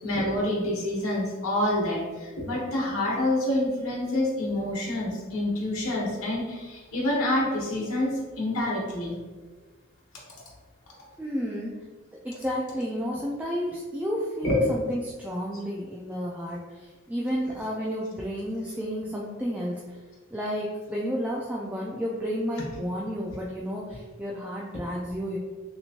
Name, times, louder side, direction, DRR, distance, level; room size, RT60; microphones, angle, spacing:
voice 1, 0.0-2.0 2.4-8.1 8.4-9.2 14.4-14.6, left 1 dB, 80° left, -3 dB, 1.0 m, -27 dB
voice 2, 11.2-11.7 12.2-16.6 17.1-19.7 20.3-25.4, equal, 5° right, -4 dB, 0.3 m, -31 dB
3.2 x 3.0 x 2.7 m, 1.4 s
head